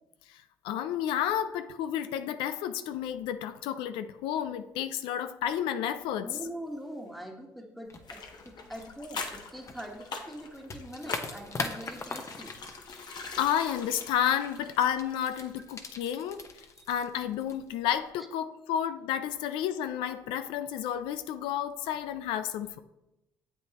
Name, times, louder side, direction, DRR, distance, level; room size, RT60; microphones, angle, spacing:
voice 1, 0.6-6.4 13.4-16.4 16.9-22.8, left 10 dB, 80° left, 0.4 m, -31 dB
voice 2, 6.2-12.5 16.8-16.9 21.8-21.9, equal, ahead, 1.4 m, -43 dB
sound 1, 7.9-18.1, left 3 dB, 35° left, 1.0 m, -42 dB
sound 2, 8.0-15.6 15.9-16.0, left 4 dB, 55° left, 1.1 m, -44 dB
8.8 x 7.8 x 2.9 m
supercardioid pair, 65°, 9 cm